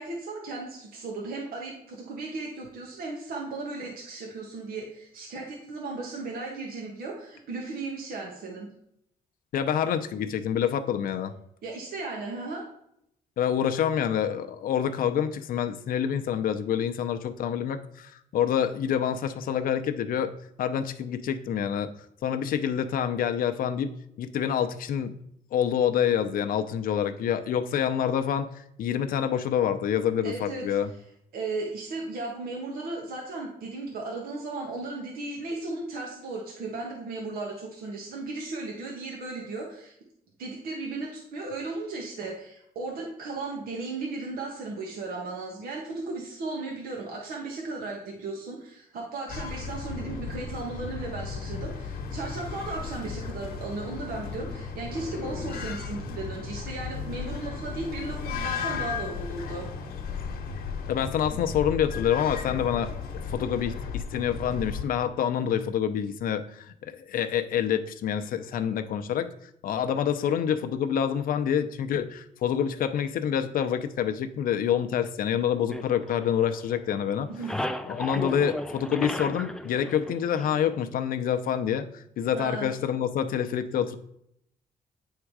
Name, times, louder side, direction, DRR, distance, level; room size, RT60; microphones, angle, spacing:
voice 1, 0.0-8.7 11.6-12.6 30.2-30.7 31.3-39.9 40.4-59.7 77.3-77.5 82.3-82.7, right 3 dB, 75° right, -1 dB, 1.4 m, -36 dB
voice 2, 9.5-11.3 13.4-20.3 20.6-21.9 22.2-25.2 25.5-30.9 60.9-62.9 63.3-69.3 69.6-77.3 77.9-84.0, left 9 dB, 70° left, 9 dB, 0.6 m, -27 dB
sound 1, 49.3-64.8, left 5 dB, 85° left, 1.1 m, -35 dB
sound 2, 75.7-76.8 77.1-80.8, left 1 dB, 5° left, 0.4 m, -35 dB
8.9 x 3.7 x 4.7 m, 0.74 s
cardioid pair, 130°, 15 cm